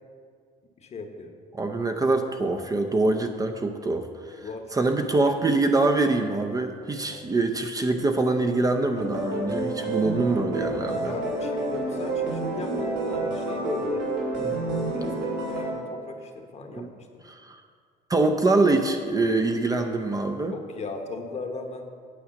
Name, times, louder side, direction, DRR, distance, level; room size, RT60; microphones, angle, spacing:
voice 1, 0.8-1.3 4.4-5.2 7.0-7.2 10.7-14.0 14.3-14.6 14.9-15.1 15.5-17.2 20.5-21.8, left 3 dB, 40° left, 5 dB, 1.0 m, -38 dB
voice 2, 1.6-4.4 4.7-11.1 14.4-14.6 16.7-16.9 17.3-17.6 18.1-20.6, right 2 dB, 20° right, 5 dB, 0.6 m, -24 dB
sound 1, 9.0-15.7, right 2 dB, 85° right, 2.7 m, -29 dB
8.7 x 4.8 x 7.5 m, 2.1 s
cardioid pair, 110°, 17 cm